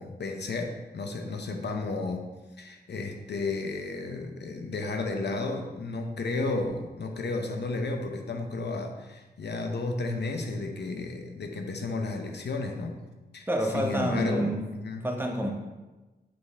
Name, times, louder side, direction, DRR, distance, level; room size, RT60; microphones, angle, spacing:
voice 1, 0.0-2.2 2.6-13.0 13.3-13.5 13.7-15.1, left 3 dB, 80° left, 4 dB, 0.8 m, -33 dB
voice 2, 13.5-14.6 15.0-15.5, right 1 dB, 10° right, 1 dB, 0.9 m, -28 dB
7.5 x 4.2 x 3.5 m, 1.2 s
wide cardioid pair, 95°, 17 cm